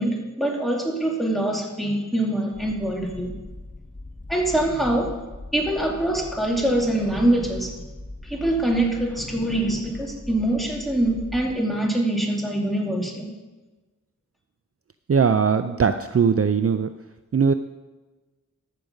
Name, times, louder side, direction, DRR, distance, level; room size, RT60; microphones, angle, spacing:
voice 1, 0.0-3.3 4.3-5.1 5.5-7.7 8.2-13.3, right 1 dB, ahead, -1 dB, 2.5 m, -24 dB
sound 1, 2.5-11.6, left 2 dB, 25° left, 1.4 m, -40 dB
voice 2, 15.1-16.9 17.3-17.5, right 6 dB, 50° right, 10 dB, 0.5 m, -20 dB
13.5 x 6.6 x 5.3 m, 1.2 s
wide cardioid pair, 45°, 30 cm